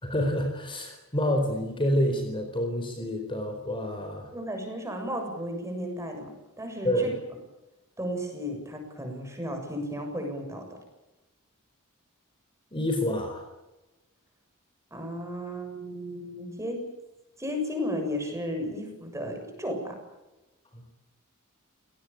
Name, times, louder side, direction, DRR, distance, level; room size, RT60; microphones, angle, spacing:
voice 1, 0.0-4.3 6.8-7.1 12.7-13.4 20.7-20.8, equal, 25° left, 5 dB, 4.3 m, -28 dB
voice 2, 4.3-7.1 8.0-10.8 14.9-16.9 17.4-20.0, equal, 15° right, 4 dB, 7.1 m, -34 dB
27.5 x 19.0 x 8.7 m, 1.0 s
head